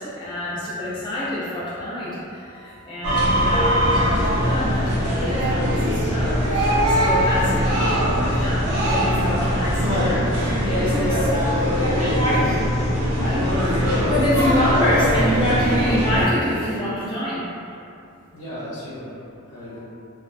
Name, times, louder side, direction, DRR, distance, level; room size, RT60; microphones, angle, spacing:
voice 1, 0.0-12.6 13.2-17.4 19.6-19.8, left 1 dB, 20° left, -10 dB, 0.4 m, -26 dB
sound 1, 3.0-16.3, equal, 85° right, 0.6 m, -21 dB
voice 2, 18.3-19.8, equal, 65° left, -12 dB, 0.8 m, -38 dB
2.4 x 2.0 x 2.5 m, 2.6 s
head